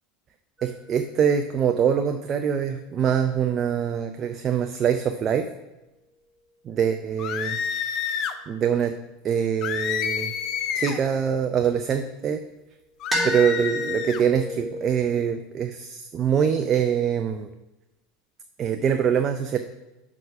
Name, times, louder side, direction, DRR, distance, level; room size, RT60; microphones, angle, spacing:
sound 1, 0.6-4.9 9.2-11.7 13.1-15.0, equal, ahead, 2.7 m, -34 dB
voice 1, 0.6-5.5 6.7-7.6 8.5-9.0 9.2-10.3 10.7-12.4 13.2-17.5 18.6-19.6, right 8 dB, 35° right, 7 dB, 0.5 m, -24 dB
sound 2, 7.2-8.4 9.6-11.0 13.0-14.2, left 8 dB, 45° left, 0.5 m, -29 dB
6.1 x 4.8 x 6.0 m, 1.0 s
figure-of-eight pair, 75°, 0 cm